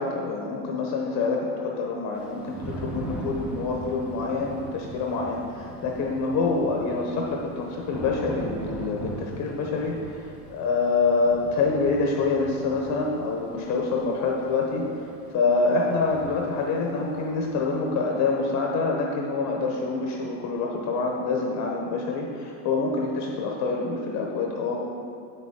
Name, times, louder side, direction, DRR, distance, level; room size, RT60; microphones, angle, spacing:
voice 1, 0.0-14.8 15.3-24.8, left 3 dB, 35° left, 0 dB, 0.8 m, -26 dB
Thunder / Rain, 2.1-17.9, right 1 dB, 5° right, 0.3 m, -40 dB
8.0 x 6.5 x 3.6 m, 2.4 s
supercardioid pair, 140°, 49 cm